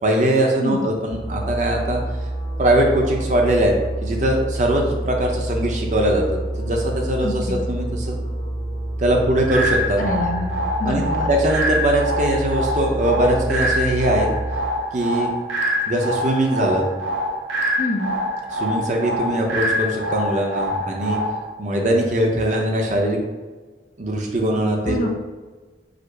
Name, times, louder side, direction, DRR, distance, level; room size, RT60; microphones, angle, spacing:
voice 1, 0.0-2.0 2.6-3.7 4.0-6.2 6.6-8.2 9.0-10.0 10.8-14.3 14.9-15.3 15.9-16.9 18.5-21.2 21.6-23.2 24.0-25.0, right 1 dB, 40° right, 1 dB, 0.6 m, -21 dB
sound 1, 1.1-14.6, right 1 dB, 80° left, 1.2 m, -28 dB
voice 2, 7.2-7.6 10.0-10.5 10.8-11.3 17.8-18.1 24.9-25.1, left 1 dB, 45° left, 2 dB, 0.5 m, -26 dB
sound 2, 9.5-21.5, equal, 80° right, 0.7 m, -25 dB
4.9 x 2.0 x 4.6 m, 1.3 s
head